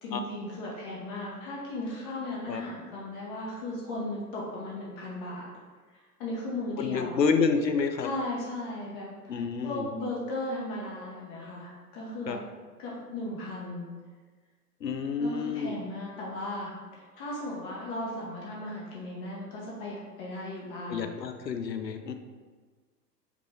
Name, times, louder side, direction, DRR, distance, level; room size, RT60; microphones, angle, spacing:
voice 1, 0.0-5.5 5.9-7.2 8.0-12.4 12.8-13.9 15.2-21.1, left 1 dB, 35° left, -4 dB, 0.9 m, -36 dB
voice 2, 6.8-8.1 9.3-9.9 12.3-12.4 14.8-15.7 20.9-22.1, left 5 dB, 90° left, 7 dB, 0.6 m, -28 dB
5.0 x 3.2 x 3.3 m, 1.4 s
figure-of-eight pair, 105°, 49 cm